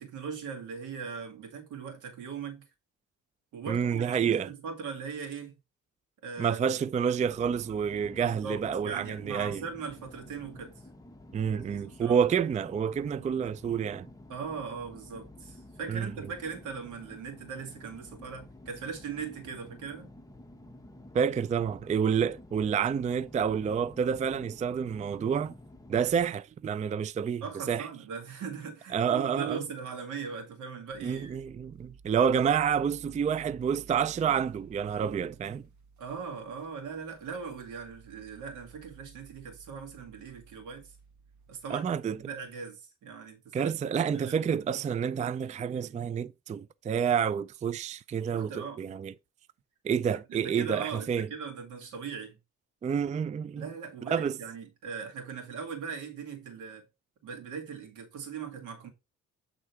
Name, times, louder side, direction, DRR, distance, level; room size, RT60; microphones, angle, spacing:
voice 1, 0.0-2.6 3.5-5.5 6.2-6.7 8.2-10.7 11.5-12.2 14.3-20.1 27.4-31.4 36.0-40.9 41.5-43.7 44.1-44.4 48.3-48.8 50.3-52.4 53.6-56.8 57.2-58.9, right 6 dB, 85° right, 2.1 m, -40 dB
voice 2, 3.7-4.5 6.4-9.6 11.3-14.1 15.9-16.1 21.1-25.5 25.9-27.9 28.9-29.6 31.0-35.7 41.7-42.2 43.5-49.1 49.8-51.3 52.8-53.7 54.1-54.4, right 7 dB, 25° right, 0.4 m, -29 dB
sound 1, 7.2-26.3, left 1 dB, 10° left, 1.0 m, -51 dB
sound 2, 30.9-42.5, right 5 dB, 65° right, 1.6 m, -56 dB
8.2 x 3.7 x 4.5 m
cardioid pair, 90°, 30 cm